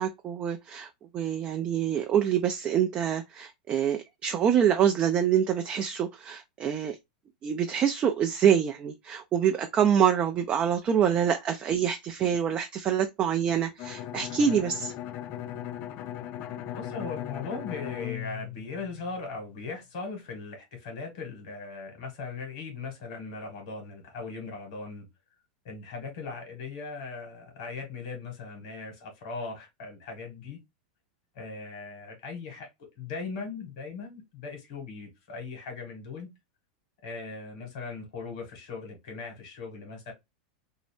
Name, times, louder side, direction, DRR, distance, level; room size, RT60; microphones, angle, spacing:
voice 1, 0.0-7.0 7.4-14.9, right 8 dB, 30° right, 0.3 m, -26 dB
Bowed string instrument, 13.8-19.5, left 12 dB, 45° left, 0.3 m, -38 dB
voice 2, 16.7-25.1 25.6-30.6 31.3-36.3 37.0-40.1, left 4 dB, 65° left, 1.4 m, -39 dB
2.7 x 2.0 x 3.1 m
hypercardioid pair, 115°, 4 cm